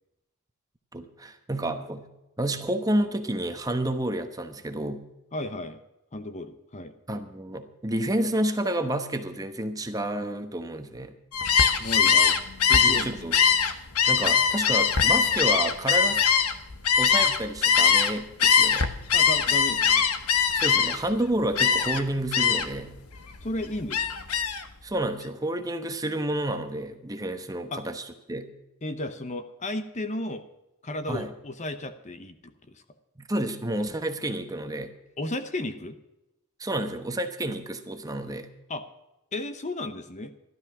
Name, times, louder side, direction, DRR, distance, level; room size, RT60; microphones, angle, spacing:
voice 1, 0.9-2.1 2.4-5.0 7.1-11.1 12.8-13.3 14.1-16.2 17.0-18.9 20.5-23.0 24.8-28.5 31.1-31.3 33.2-34.9 36.6-38.5, right 1 dB, 15° right, 7 dB, 1.0 m, -30 dB
voice 2, 5.3-5.8 6.1-6.9 11.8-12.4 12.7-13.1 19.1-20.1 23.4-24.2 27.7-27.8 28.8-30.4 30.8-32.8 35.2-36.0 38.7-38.8 39.3-40.3, left 1 dB, 30° left, 10 dB, 0.8 m, -34 dB
Gull seagull, 11.3-18.1 18.4-21.1 21.6-22.0 22.3-22.8 23.2-24.6, left 7 dB, 80° left, 1.1 m, -21 dB
13.5 x 12.0 x 6.0 m, 0.93 s
head